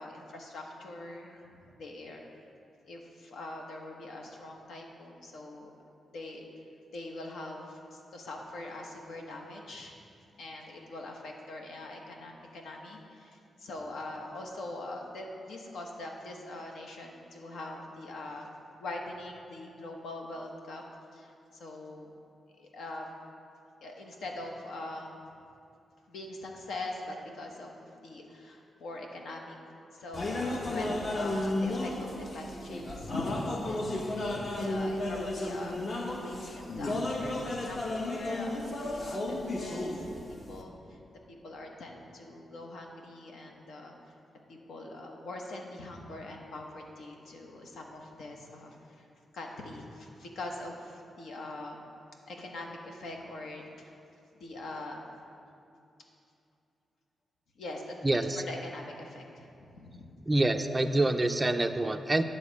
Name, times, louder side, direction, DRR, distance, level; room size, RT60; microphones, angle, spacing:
voice 1, 0.0-2.2 2.8-5.7 6.1-6.4 6.9-9.9 10.4-18.5 18.8-20.8 21.1-22.1 22.6-23.1 23.8-25.1 26.1-29.5 29.9-35.8 36.1-40.0 40.5-41.0 41.3-43.9 44.5-49.0 49.3-51.8 52.3-53.9 54.4-55.0 57.6-58.0 58.4-59.5 59.7-60.0, left 2 dB, 85° left, 1 dB, 1.1 m, -42 dB
sound 1, 30.1-40.6, left 1 dB, 40° left, 0.8 m, -33 dB
voice 2, 58.0-58.4 60.3-62.2, right 2 dB, 15° right, 6 dB, 0.3 m, -26 dB
10.0 x 4.0 x 7.3 m, 2.6 s
wide cardioid pair, 130°, 0 cm